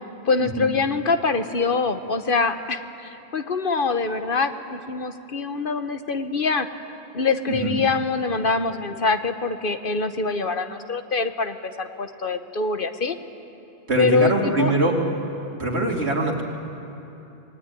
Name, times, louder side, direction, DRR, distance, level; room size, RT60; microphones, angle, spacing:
voice 1, 0.2-6.7 7.1-13.2 14.0-14.7, left 4 dB, 55° left, 8 dB, 1.2 m, -24 dB
voice 2, 13.9-15.0 15.6-16.4, right 2 dB, 75° right, -1 dB, 3.1 m, -23 dB
26.0 x 19.5 x 9.8 m, 2.9 s
omnidirectional pair, 1.1 m